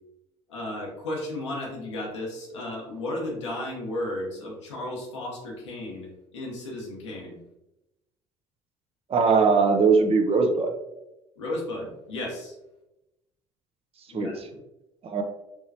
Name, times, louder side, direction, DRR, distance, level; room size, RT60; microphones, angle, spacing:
voice 1, 0.5-7.4 11.4-12.6 14.1-14.6, left 1 dB, 85° left, -2 dB, 1.0 m, -34 dB
voice 2, 9.1-10.7 14.1-14.3 15.0-15.2, right 4 dB, 40° right, 5 dB, 0.7 m, -20 dB
4.5 x 3.0 x 2.8 m, 0.94 s
hypercardioid pair, 60°, 15 cm